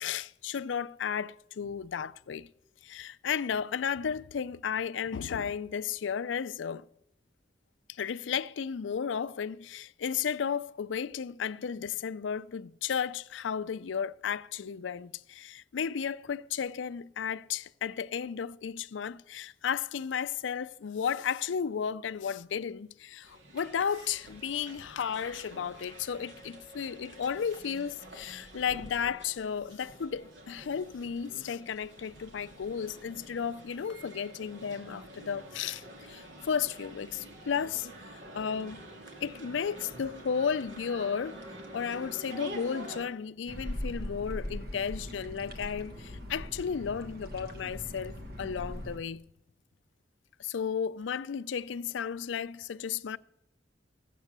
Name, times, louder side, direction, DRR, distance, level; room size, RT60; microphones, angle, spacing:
voice 1, 0.0-2.5 2.8-6.9 7.9-37.9 38.3-38.9 39.2-41.4 41.7-49.2 50.4-53.2, left 7 dB, 85° left, 0.4 m, -34 dB
sound 1, 23.2-43.1, right 1 dB, 75° right, 2.2 m, -48 dB
sound 2, 43.5-49.0, equal, 55° right, 1.5 m, -40 dB
15.0 x 8.3 x 6.7 m
head